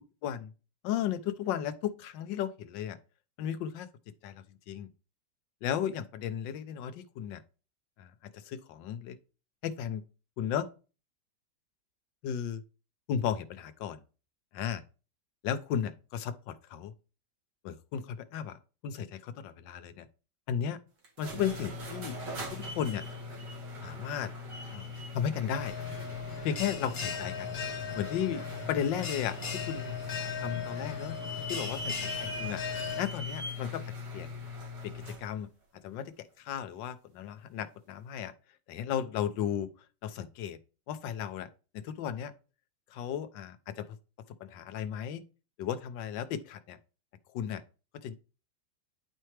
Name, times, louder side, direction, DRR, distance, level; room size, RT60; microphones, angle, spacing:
voice 1, 0.8-3.0 3.4-3.9 4.2-4.9 5.6-7.4 8.0-9.2 9.6-10.1 10.4-10.7 12.2-12.6 13.1-14.0 14.5-14.8 15.4-16.9 17.6-20.1 20.5-20.8 21.2-22.2 22.5-23.1 23.8-24.3 24.7-25.7 26.4-27.6 27.9-28.4 28.7-29.4 29.7-30.0 30.4-31.2 31.5-32.6 33.0-33.8 34.1-34.3 34.8-35.5 35.8-38.3 38.7-39.7 40.0-40.6 40.9-41.5 41.7-42.3 42.9-44.0 44.5-45.2 45.6-46.8 47.3-47.6 48.0-48.2, left 9 dB, 90° left, 1.4 m, -35 dB
sound 1, 21.0-35.3, left 2 dB, 70° right, 2.2 m, -40 dB
Bell, 25.5-33.0, left 6 dB, 60° left, 1.3 m, -38 dB
9.7 x 4.5 x 3.2 m
omnidirectional pair, 2.0 m